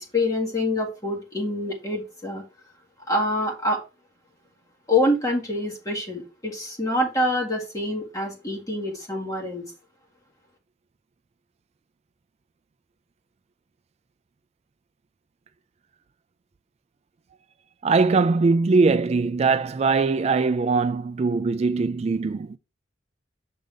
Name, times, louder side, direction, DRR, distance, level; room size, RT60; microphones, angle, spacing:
voice 1, 0.1-2.4 3.1-3.8 4.9-9.7, left 1 dB, 20° left, 1.9 m, -26 dB
voice 2, 17.8-22.6, right 4 dB, 35° right, 0.3 m, -21 dB
6.6 x 3.9 x 4.7 m
head